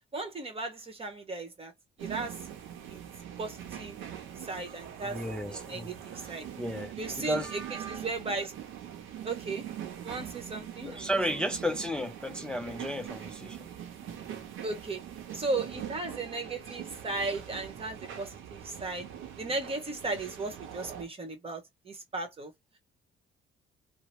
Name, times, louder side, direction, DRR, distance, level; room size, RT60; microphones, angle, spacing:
voice 1, 0.1-1.7 2.0-2.4 2.9-3.0 3.4-4.0 4.5-5.2 5.5-6.5 7.0-8.5 9.2-9.6 10.0-11.1 14.6-15.0 15.3-19.1 19.4-22.5, right 3 dB, 30° right, 1.1 m, -36 dB
sound 1, 2.0-21.0, right 9 dB, 85° right, 0.7 m, -43 dB
voice 2, 5.1-5.9 6.2-7.5 10.8-13.7, equal, 5° left, 0.4 m, -33 dB
2.8 x 2.0 x 3.0 m
cardioid pair, 90°, 20 cm